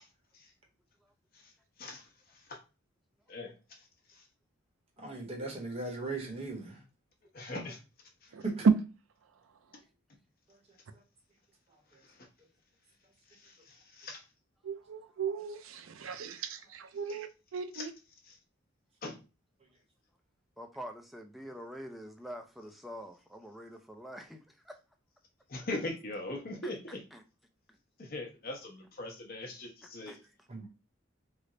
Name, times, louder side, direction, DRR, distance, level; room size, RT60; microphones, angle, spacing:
voice 1, 5.0-6.8 8.4-8.7 30.5-30.7, right 3 dB, 30° right, 0.9 m, -37 dB
voice 2, 7.3-7.8 12.0-12.2 13.4-14.2 17.7-17.9 18.2-18.4 19.0-19.1 25.5-27.0 28.0-30.2, left 2 dB, 45° left, 0.8 m, -40 dB
voice 3, 14.6-17.9, right 6 dB, 80° right, 0.4 m, -39 dB
voice 4, 20.6-24.8 26.6-27.2 27.7-27.8 30.1-30.5, equal, ahead, 0.3 m, -46 dB
3.2 x 2.1 x 3.7 m
head